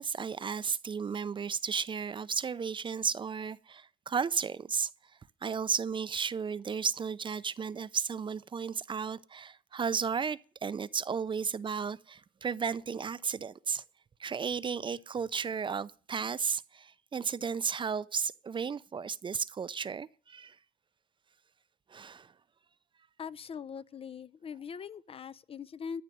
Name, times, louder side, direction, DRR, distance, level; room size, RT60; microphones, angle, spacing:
voice 1, 0.0-4.9 5.4-13.8 14.2-20.6 21.9-22.3, right 6 dB, 30° right, 0.6 m, -34 dB
voice 2, 23.2-26.0, left 6 dB, 35° left, 0.6 m, -41 dB
14.0 x 6.5 x 9.2 m
cardioid pair, 110°, 17 cm